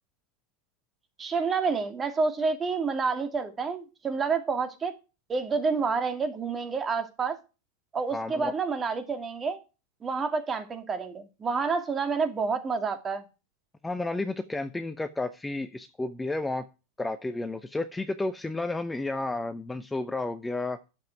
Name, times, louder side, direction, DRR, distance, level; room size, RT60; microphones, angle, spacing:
voice 1, 1.2-4.9 5.3-7.4 7.9-9.6 10.0-13.2, right 5 dB, 25° right, 2.3 m, -29 dB
voice 2, 8.1-8.5 13.8-16.6 17.0-20.8, left 2 dB, 10° left, 0.8 m, -32 dB
10.5 x 7.3 x 4.7 m
hypercardioid pair, 95°, 0 cm